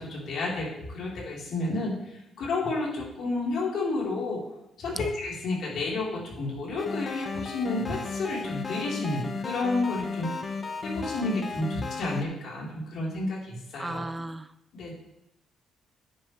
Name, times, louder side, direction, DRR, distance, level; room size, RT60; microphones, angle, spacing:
voice 1, 0.0-1.9 2.4-4.4 4.8-10.3 10.8-14.0 14.7-14.9, left 2 dB, 70° left, -3 dB, 3.9 m, -31 dB
sound 1, 6.8-12.2, left 4 dB, 40° left, 1.1 m, -34 dB
voice 2, 13.8-14.5, right 2 dB, 15° right, 13 dB, 0.4 m, -35 dB
10.0 x 9.4 x 3.3 m, 0.87 s
cardioid pair, 90°, 0 cm